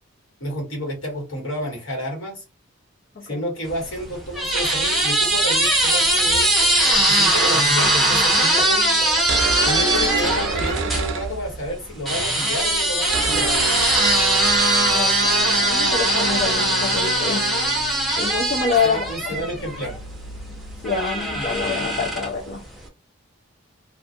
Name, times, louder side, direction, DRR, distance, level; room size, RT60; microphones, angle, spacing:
voice 1, 0.4-2.4 3.2-6.5 6.9-9.0 9.6-13.5 18.8-20.0, equal, 70° left, 1.5 m, -30 dB
sound 1, 3.7-11.1 12.1-20.0 20.8-22.5, right 1 dB, ahead, 0.5 m, -20 dB
sound 2, 9.1-11.9 12.1-12.2 12.4-21.8, right 4 dB, 65° right, 0.4 m, -29 dB
voice 2, 14.9-17.5 18.2-19.1 19.4-19.5 20.8-22.6, left 5 dB, 45° left, 0.4 m, -26 dB
2.4 x 2.3 x 2.6 m
head